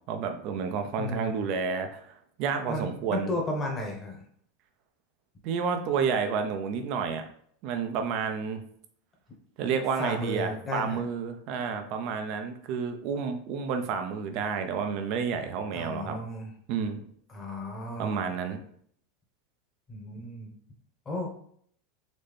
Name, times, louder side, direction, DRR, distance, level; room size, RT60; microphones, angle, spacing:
voice 1, 0.1-3.3 5.4-7.2 7.6-8.6 9.6-16.2 16.7-17.0 18.0-18.6, right 6 dB, 55° right, 7 dB, 0.7 m, -30 dB
voice 2, 1.0-1.5 2.7-4.2 10.0-11.0 15.7-16.5 17.3-18.3 19.9-20.5 21.0-21.3, left 1 dB, 25° left, 0 dB, 1.3 m, -34 dB
4.1 x 3.2 x 3.4 m, 0.63 s
hypercardioid pair, 110°, 0 cm